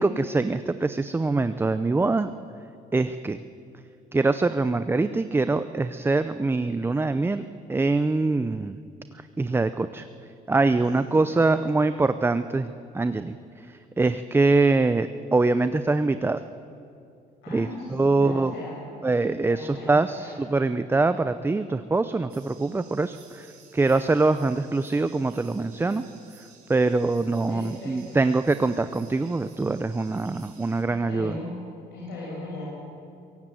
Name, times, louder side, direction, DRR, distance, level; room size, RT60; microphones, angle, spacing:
voice 1, 0.0-2.3 2.9-3.4 4.1-8.8 9.1-10.1 10.5-16.4 17.5-18.5 19.0-26.0 26.7-31.3, right 3 dB, 15° right, 11 dB, 0.6 m, -24 dB
voice 2, 11.5-11.9 17.4-18.8 19.5-20.3 27.5-28.2 30.9-31.6 31.9-32.6, left 2 dB, 85° left, -4 dB, 6.9 m, -38 dB
sound 1, 22.3-30.8, right 6 dB, 65° right, 4.8 m, -54 dB
23.0 x 16.5 x 9.2 m, 2.5 s
cardioid pair, 110°, 17 cm